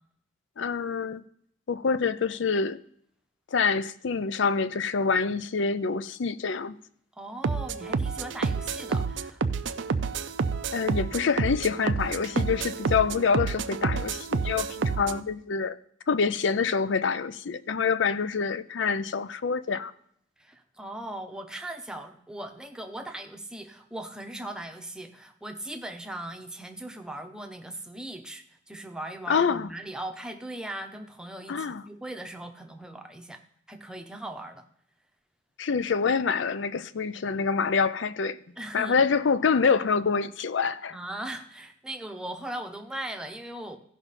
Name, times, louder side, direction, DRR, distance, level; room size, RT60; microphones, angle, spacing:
voice 1, 0.6-1.2 1.7-2.8 3.5-6.8 10.7-15.8 16.1-19.9 29.3-29.7 31.5-31.8 35.6-38.4 38.7-41.0, left 5 dB, 65° left, 0.5 m, -26 dB
voice 2, 7.2-9.4 9.7-9.8 10.2-10.3 20.4-33.4 33.7-34.6 38.6-39.0 40.9-43.8, right 1 dB, 5° right, 0.8 m, -39 dB
sound 1, 7.4-15.2, right 4 dB, 65° right, 0.5 m, -29 dB
16.0 x 5.7 x 4.1 m
head